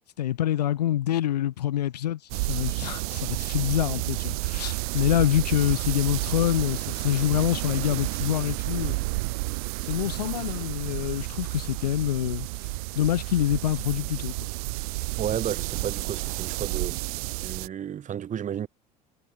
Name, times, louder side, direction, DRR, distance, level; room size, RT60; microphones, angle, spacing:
voice 1, 0.2-9.0 9.9-12.5 12.9-14.3, left 12 dB, 75° left, 0.9 m, -26 dB
sound 1, 2.3-17.7, right 26 dB, 65° right, 0.7 m, -31 dB
voice 2, 15.1-17.1 17.4-18.7, right 9 dB, 35° right, 2.7 m, -32 dB
figure-of-eight pair, 70°, 21 cm